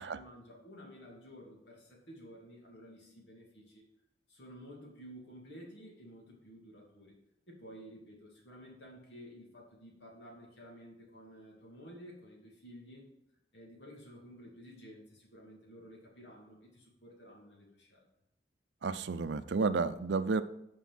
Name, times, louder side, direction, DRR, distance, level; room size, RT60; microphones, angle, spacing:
voice 1, 0.0-3.8 4.3-7.1 7.5-13.0 13.5-18.1, equal, 75° left, -1 dB, 2.6 m, -52 dB
voice 2, 18.8-20.4, right 4 dB, 85° right, 13 dB, 0.5 m, -31 dB
9.3 x 5.2 x 5.8 m, 0.80 s
head